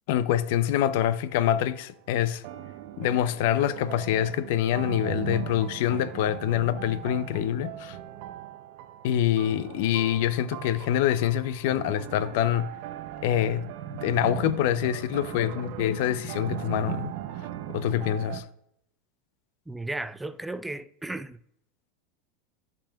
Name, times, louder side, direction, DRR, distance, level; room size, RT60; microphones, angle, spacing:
voice 1, 0.1-2.4 3.0-8.0 9.0-12.7 13.2-13.6 14.0-17.1 17.7-18.4, left 11 dB, 70° left, 0.5 m, -25 dB
sound 1, 1.3-1.8 2.4-18.4, right 12 dB, 65° right, 0.5 m, -39 dB
voice 2, 19.7-21.4, right 2 dB, 5° right, 0.4 m, -35 dB
11.5 x 5.3 x 2.3 m
supercardioid pair, 115°, 0 cm